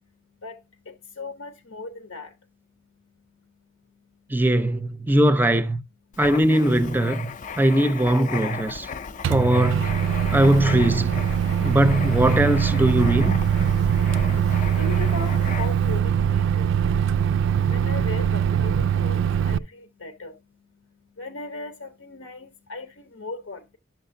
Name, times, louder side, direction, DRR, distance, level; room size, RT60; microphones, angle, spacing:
voice 1, 0.9-2.3 14.1-16.9 17.7-20.3 21.2-23.8, left 3 dB, 85° left, 0.9 m, -37 dB
voice 2, 4.3-5.8 6.2-7.3 7.6-8.9 9.3-9.9 10.3-11.3 11.6-13.4, right 1 dB, 10° right, 0.5 m, -20 dB
Writing, 6.1-15.9, left 6 dB, 40° left, 0.5 m, -36 dB
Microwave oven, 9.2-19.6, right 8 dB, 65° right, 0.3 m, -22 dB
10.5 x 6.6 x 2.6 m
head